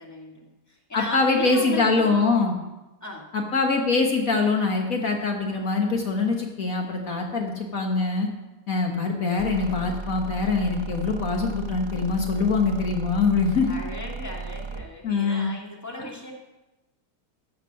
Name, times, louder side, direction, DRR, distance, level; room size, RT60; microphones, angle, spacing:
voice 1, 0.0-2.2 3.0-3.3 13.7-16.3, left 2 dB, 10° left, -1 dB, 2.0 m, -36 dB
voice 2, 0.9-2.5 3.3-8.3 8.7-13.8 15.0-15.5 16.0-16.1, left 4 dB, 60° left, 2 dB, 1.7 m, -23 dB
sound 1, 9.4-14.9, right 5 dB, 35° right, 0.4 m, -35 dB
15.0 x 8.3 x 5.7 m, 1.0 s
omnidirectional pair, 1.7 m